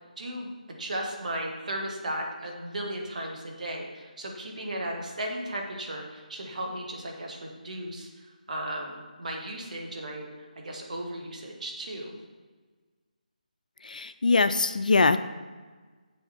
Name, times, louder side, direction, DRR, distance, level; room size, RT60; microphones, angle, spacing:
voice 1, 0.2-0.5 0.8-8.1 8.5-10.3 10.6-12.2, right 1 dB, 60° right, 1 dB, 1.8 m, -35 dB
voice 2, 13.8-15.2, left 3 dB, 70° left, 11 dB, 0.4 m, -22 dB
7.9 x 7.1 x 4.3 m, 1.4 s
figure-of-eight pair, 160°, 5 cm